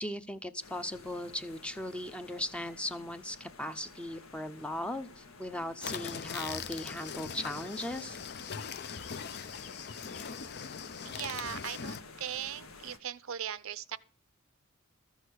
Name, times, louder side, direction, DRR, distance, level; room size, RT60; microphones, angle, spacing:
voice 1, 0.0-8.2, left 1 dB, 5° left, 0.6 m, -38 dB
sound 1, 0.6-13.0, left 4 dB, 75° left, 1.4 m, -52 dB
sound 2, 5.8-12.0, left 6 dB, 50° left, 0.6 m, -41 dB
voice 2, 11.0-14.0, right 9 dB, 70° right, 0.6 m, -39 dB
13.5 x 6.5 x 6.3 m
head